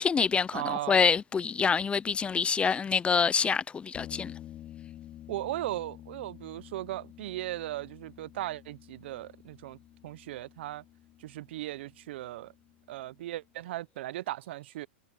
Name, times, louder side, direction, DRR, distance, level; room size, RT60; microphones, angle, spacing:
voice 1, 0.0-4.3, left 6 dB, 15° left, 0.6 m, -26 dB
voice 2, 0.5-1.0 5.3-9.8 10.0-10.8 11.2-12.5 12.9-14.9, right 15 dB, 70° right, 0.8 m, -37 dB
sound 1, 3.9-13.4, left 12 dB, 35° left, 2.8 m, -50 dB
hypercardioid pair, 115°, 6 cm